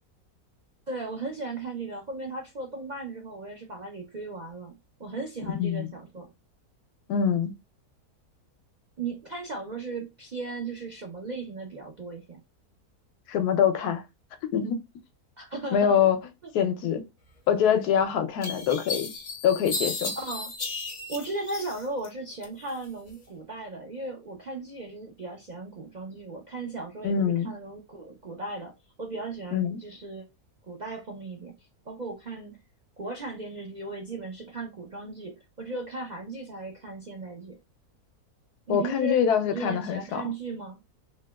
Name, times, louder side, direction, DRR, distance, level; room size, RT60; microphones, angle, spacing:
voice 1, 0.9-6.3 9.0-12.4 15.4-16.0 20.2-20.5 21.1-30.3 30.6-32.6 33.0-37.6 38.7-40.8, right 3 dB, 60° right, 0.4 m, -37 dB
voice 2, 7.1-7.5 13.3-14.0 14.5-14.8 15.7-16.2 16.5-17.0 17.5-19.1 19.4-20.1 27.0-27.5 29.5-29.8 38.7-40.2, left 8 dB, 80° left, 1.2 m, -24 dB
sound 1, 17.7-17.8 18.4-22.1 22.4-23.2, left 3 dB, 60° left, 0.4 m, -34 dB
3.1 x 2.9 x 2.2 m
omnidirectional pair, 1.6 m